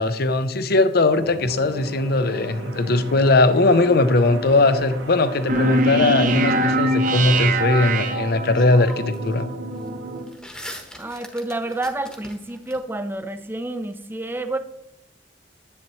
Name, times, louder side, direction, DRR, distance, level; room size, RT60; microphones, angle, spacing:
voice 1, 0.0-9.5, left 2 dB, 60° left, 12 dB, 0.6 m, -19 dB
sound 1, 1.2-10.3, right 2 dB, 90° right, 1.2 m, -35 dB
sound 2, 5.0-5.8 8.0-8.1 8.5-9.3 9.6-12.8, equal, 5° left, 1.1 m, -41 dB
sound 3, 5.5-8.8, right 1 dB, 50° right, 0.7 m, -22 dB
voice 2, 11.0-14.6, right 2 dB, 10° right, 9 dB, 0.6 m, -29 dB
10.5 x 8.6 x 3.1 m, 0.81 s
head